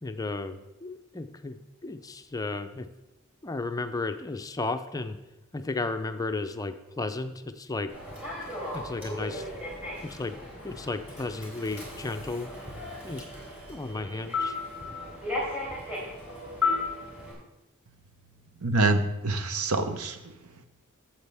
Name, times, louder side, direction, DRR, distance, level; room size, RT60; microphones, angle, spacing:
voice 1, 0.0-2.9 3.4-5.2 5.5-7.9 8.7-9.5 10.0-10.4 10.6-12.5 13.0-13.2 13.7-14.6, left 3 dB, 15° left, 8 dB, 0.5 m, -34 dB
Human voice / Subway metro underground, 7.9-17.3, left 3 dB, 10° right, 3.7 m, -35 dB
voice 2, 18.6-20.2, right 2 dB, 90° right, 9 dB, 0.8 m, -25 dB
12.5 x 8.0 x 3.5 m, 0.98 s
head